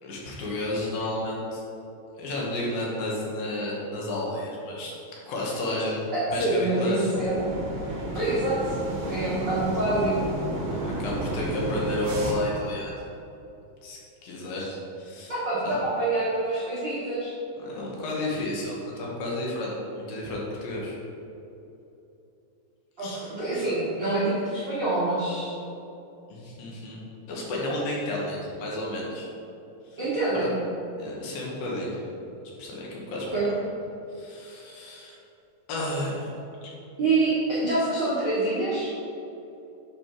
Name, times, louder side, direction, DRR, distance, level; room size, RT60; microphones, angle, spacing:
voice 1, 0.0-1.6 2.2-4.9 5.2-6.0 6.3-7.1 10.8-12.9 13.8-14.7 15.0-15.3 15.6-15.8 17.6-21.0 23.0-23.2 23.6-23.7 26.3-27.0 27.3-29.3 30.3-30.5 31.0-32.0 32.6-33.3 34.1-35.2 35.7-36.3 36.6-36.7, left 1 dB, 65° left, -3 dB, 2.7 m, -31 dB
voice 2, 6.1-7.4 8.1-8.7 9.1-10.1 14.6-14.7 15.3-17.3 23.0-25.5 30.0-30.6 33.3-33.5 37.0-38.9, right 2 dB, 90° right, -11 dB, 1.0 m, -26 dB
sound 1, 7.1-12.3, right 1 dB, 65° right, 2.1 m, -32 dB
8.1 x 5.4 x 4.5 m, 2.9 s
omnidirectional pair, 5.0 m